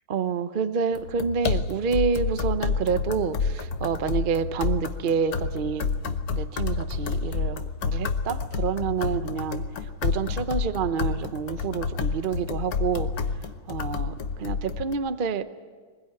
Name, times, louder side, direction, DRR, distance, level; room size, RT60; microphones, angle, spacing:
voice 1, 0.1-9.6 10.0-13.1 13.7-15.4, right 6 dB, 85° right, 11 dB, 0.4 m, -28 dB
sound 1, 0.9-14.9, left 5 dB, 55° left, 1.3 m, -29 dB
23.5 x 21.0 x 9.5 m, 1.6 s
omnidirectional pair, 2.3 m